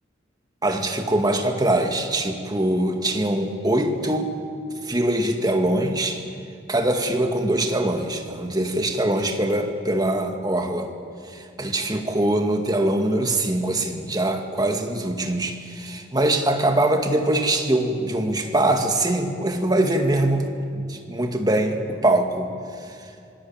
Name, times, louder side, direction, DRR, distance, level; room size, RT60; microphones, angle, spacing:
voice 1, 0.6-4.3 4.8-6.2 6.7-10.9 11.3-20.5 20.7-22.5, right 1 dB, 20° right, 4 dB, 2.1 m, -23 dB
25.5 x 20.5 x 8.9 m, 2.5 s
head